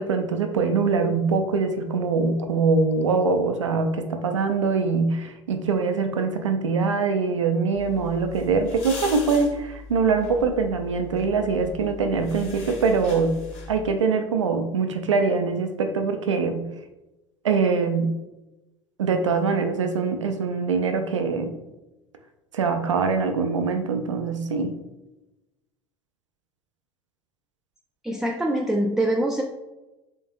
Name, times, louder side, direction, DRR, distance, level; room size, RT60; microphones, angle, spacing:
voice 1, 0.0-13.4 13.7-16.7 17.4-18.1 19.0-21.5 22.5-24.8, right 4 dB, 85° right, 7 dB, 0.4 m, -23 dB
sound 1, 7.7-13.9, left 3 dB, 50° left, 1.4 m, -40 dB
voice 2, 28.0-29.4, right 1 dB, 5° right, 1 dB, 0.3 m, -24 dB
3.6 x 3.4 x 2.5 m, 1.0 s
figure-of-eight pair, 70°, 15 cm